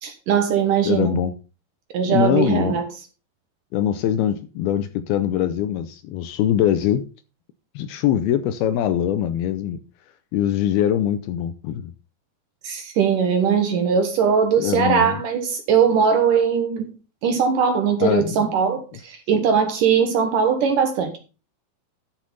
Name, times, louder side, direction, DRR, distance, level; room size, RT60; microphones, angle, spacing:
voice 1, 0.0-1.2 1.9-2.9 12.6-16.9 17.2-21.2, right 7 dB, 65° right, 2.3 m, -20 dB
voice 2, 0.9-1.3 2.1-2.8 3.7-7.1 7.8-9.8 10.3-11.9 14.6-15.1 18.0-18.5, left 10 dB, 80° left, 2.3 m, -22 dB
12.0 x 6.4 x 5.4 m
omnidirectional pair, 4.9 m